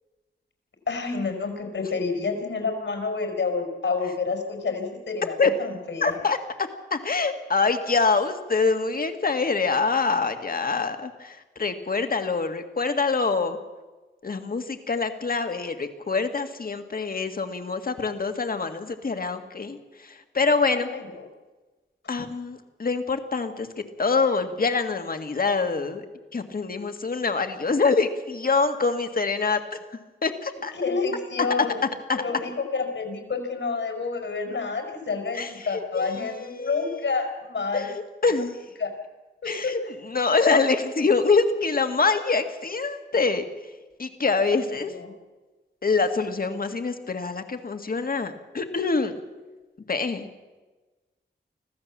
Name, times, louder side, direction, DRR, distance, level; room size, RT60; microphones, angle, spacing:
voice 1, 0.9-6.2 20.7-21.0 30.7-31.9 32.2-37.9 38.8-38.9 39.4-39.8 44.5-44.6, left 4 dB, 75° left, 5 dB, 5.1 m, -29 dB
voice 2, 6.0-13.6 14.2-20.9 22.1-26.1 26.3-29.8 30.2-30.7 32.1-32.2 35.3-37.2 37.7-37.9 38.2-38.6 39.5-43.5 44.0-44.9 45.8-49.2 49.9-50.3, left 4 dB, 50° left, 7 dB, 1.9 m, -25 dB
25.0 x 15.5 x 7.4 m, 1.2 s
wide cardioid pair, 115°, 20 cm